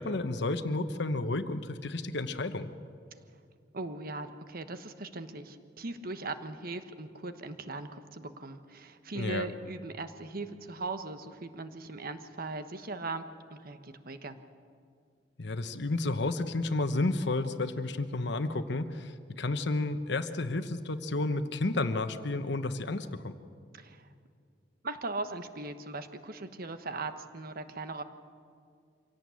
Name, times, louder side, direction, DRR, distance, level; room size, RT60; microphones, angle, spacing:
voice 1, 0.0-2.7 9.1-9.5 15.4-23.3, left 2 dB, 65° left, 10 dB, 1.1 m, -31 dB
voice 2, 3.7-14.4 23.7-24.1 24.8-28.0, right 3 dB, 55° right, 9 dB, 1.2 m, -39 dB
25.0 x 17.0 x 8.5 m, 2.2 s
head